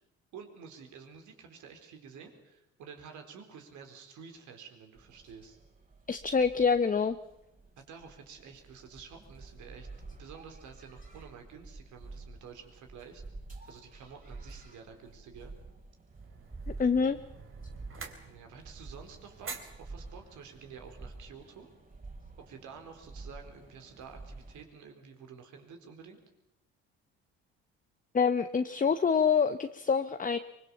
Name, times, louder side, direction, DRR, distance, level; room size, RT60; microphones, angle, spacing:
voice 1, 0.3-5.6 7.8-13.2 13.7-15.5 18.2-21.7 22.4-26.2, right 6 dB, 65° right, 5 dB, 4.4 m, -50 dB
sound 1, 5.0-24.6, right 3 dB, 25° right, 7.2 m, -49 dB
voice 2, 6.1-7.2 16.8-17.2 28.1-30.4, left 6 dB, 25° left, 9 dB, 1.1 m, -26 dB
sound 2, 16.1-21.5, right 5 dB, 40° right, 3.5 m, -48 dB
24.0 x 21.5 x 7.2 m, 0.89 s
hypercardioid pair, 60°, 32 cm